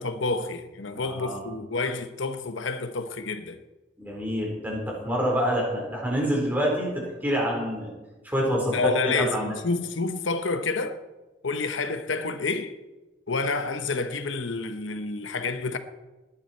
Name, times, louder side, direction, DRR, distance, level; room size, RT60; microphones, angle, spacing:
voice 1, 0.0-3.6 8.7-11.0 11.4-12.8 13.3-15.8, left 3 dB, 85° left, 1.0 m, -29 dB
voice 2, 1.0-1.4 4.0-7.9 8.2-8.8 9.1-9.5, equal, 10° right, 4.3 m, -27 dB
20.0 x 9.9 x 4.5 m
head